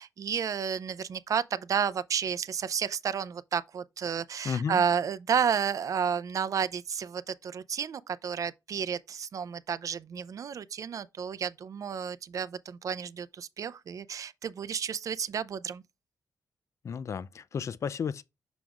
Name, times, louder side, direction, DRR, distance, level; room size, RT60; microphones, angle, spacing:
voice 1, 0.0-15.8, right 7 dB, 55° right, 0.5 m, -31 dB
voice 2, 4.4-4.8 16.8-18.2, left 6 dB, 50° left, 0.4 m, -33 dB
7.0 x 6.1 x 2.4 m
wide cardioid pair, 135°, 7 cm